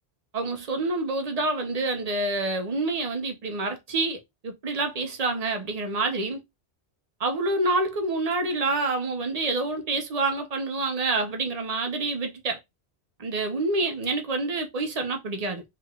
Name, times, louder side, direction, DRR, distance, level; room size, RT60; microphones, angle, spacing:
voice 1, 0.3-6.4 7.2-12.6 13.2-15.6, right 2 dB, 40° right, 0.9 m, -27 dB
3.4 x 3.4 x 2.4 m
omnidirectional pair, 1.1 m